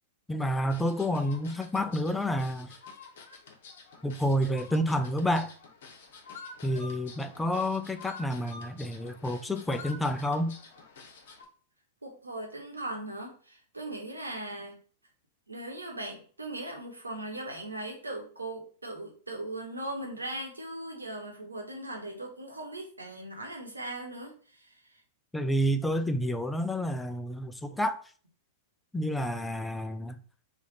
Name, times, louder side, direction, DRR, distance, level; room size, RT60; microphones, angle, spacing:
voice 1, 0.3-2.8 4.0-5.5 6.6-10.6 25.3-28.0 28.9-30.2, equal, 5° left, 0.4 m, -29 dB
sound 1, 0.7-11.5, left 4 dB, 60° left, 0.9 m, -48 dB
voice 2, 12.0-14.8 15.5-24.8, right 1 dB, 85° right, 1.0 m, -39 dB
3.3 x 2.5 x 3.9 m
figure-of-eight pair, 100°, 0 cm